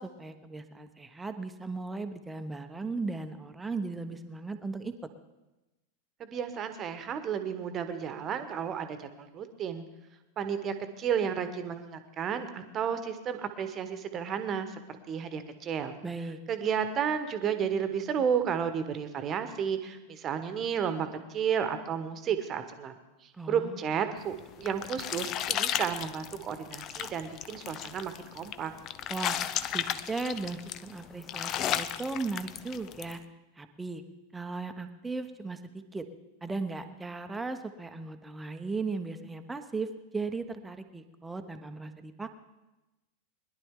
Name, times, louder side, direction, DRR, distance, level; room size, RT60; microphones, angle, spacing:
voice 1, 0.0-4.9 16.0-16.4 23.4-23.8 29.1-29.5 29.7-33.2 33.6-34.0 34.3-35.6 35.9-36.0 36.4-42.3, right 3 dB, 10° right, 7 dB, 1.0 m, -37 dB
voice 2, 6.2-9.8 10.4-14.7 15.1-15.9 16.5-23.0 23.5-28.7, right 7 dB, 30° right, 9 dB, 1.3 m, -32 dB
sound 1, 24.3-33.2, left 10 dB, 35° left, 0.6 m, -34 dB
21.5 x 11.0 x 3.7 m, 1.0 s
figure-of-eight pair, 90°, 0 cm